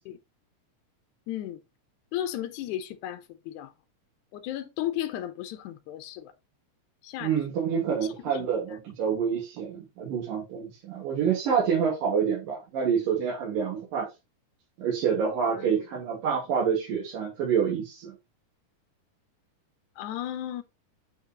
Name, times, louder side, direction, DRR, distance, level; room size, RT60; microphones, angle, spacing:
voice 1, 1.3-1.6 2.1-3.7 4.3-6.3 7.0-7.3 8.3-8.8 15.5-15.9 20.0-20.6, left 12 dB, 75° left, 2.0 m, -35 dB
voice 2, 7.2-14.1 14.8-18.2, right 7 dB, 85° right, 3.5 m, -27 dB
8.0 x 5.0 x 2.9 m
omnidirectional pair, 3.8 m